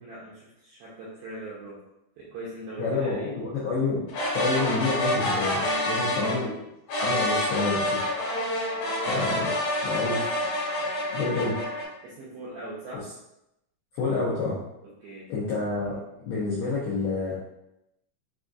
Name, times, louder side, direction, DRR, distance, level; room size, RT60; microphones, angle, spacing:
voice 1, 0.0-1.8 2.2-3.3 5.6-6.1 7.1-7.7 12.0-13.0 15.0-15.3, right 1 dB, 85° right, -7 dB, 2.4 m, -40 dB
voice 2, 2.8-4.0 4.3-5.6 5.9-6.6 7.0-7.9 9.1-9.5 9.8-10.5 11.1-11.6 13.9-14.6 15.3-17.3, left 3 dB, 90° left, -8 dB, 2.3 m, -28 dB
sound 1, 4.1-6.4 6.9-11.8, left 1 dB, 65° left, 2.2 m, -27 dB
7.3 x 2.6 x 2.5 m, 0.85 s
omnidirectional pair, 5.9 m